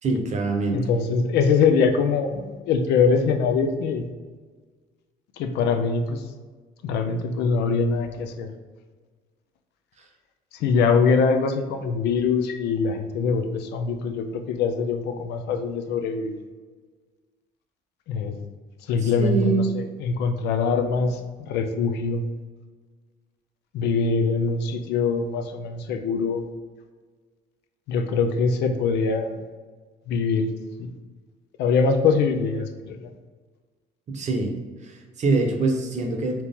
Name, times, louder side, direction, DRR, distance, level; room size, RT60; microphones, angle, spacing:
voice 1, 0.0-0.8 19.0-19.7 34.1-34.5 34.8-36.4, right 3 dB, 45° right, 4 dB, 0.8 m, -24 dB
voice 2, 0.7-4.1 5.4-6.2 6.8-8.5 10.6-16.4 18.1-18.4 18.9-21.2 21.5-22.2 23.7-26.4 27.9-29.4 30.1-30.5 30.8-30.9 31.6-33.1, left 5 dB, 80° left, 7 dB, 0.5 m, -23 dB
4.3 x 2.9 x 3.5 m, 1.4 s
cardioid pair, 110°, 17 cm